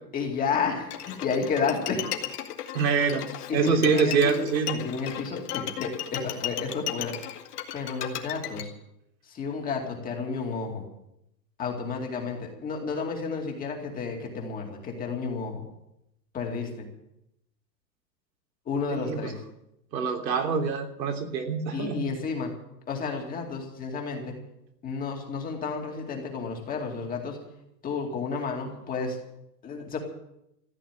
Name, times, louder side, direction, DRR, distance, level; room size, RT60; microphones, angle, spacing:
voice 1, 0.1-2.1 3.5-4.4 4.7-7.1 7.7-8.7 9.3-10.8 11.6-15.7 16.3-16.9 18.7-19.4 21.7-22.5 22.9-24.4 24.8-27.4 27.8-29.2 29.6-30.0, left 5 dB, 15° left, 1 dB, 2.4 m, -31 dB
Bowed string instrument, 0.9-8.6, left 11 dB, 65° left, 2.1 m, -35 dB
voice 2, 2.7-3.2 3.5-4.8 18.9-19.3 19.9-22.1, right 5 dB, 85° right, 2 dB, 3.4 m, -25 dB
14.5 x 9.2 x 9.2 m, 0.82 s
supercardioid pair, 160°, 50 cm